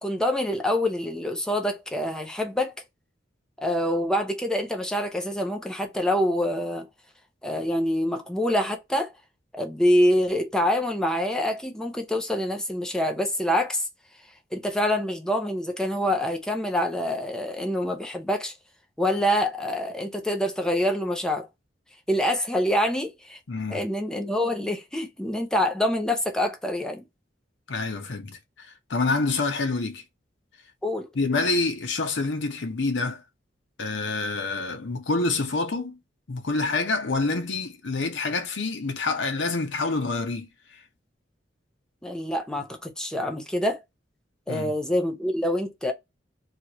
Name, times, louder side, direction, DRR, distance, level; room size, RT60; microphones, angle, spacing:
voice 1, 0.0-2.7 3.6-6.9 7.4-9.1 9.5-13.8 14.5-18.5 19.0-21.5 22.1-23.4 23.7-27.1 30.8-31.1 42.0-43.8 44.5-45.9, left 1 dB, 5° left, 0.6 m, -26 dB
voice 2, 23.5-23.8 27.7-30.0 31.1-33.2 33.8-36.0 36.3-40.8 44.5-44.7, left 3 dB, 75° left, 0.7 m, -27 dB
2.8 x 2.4 x 2.9 m
head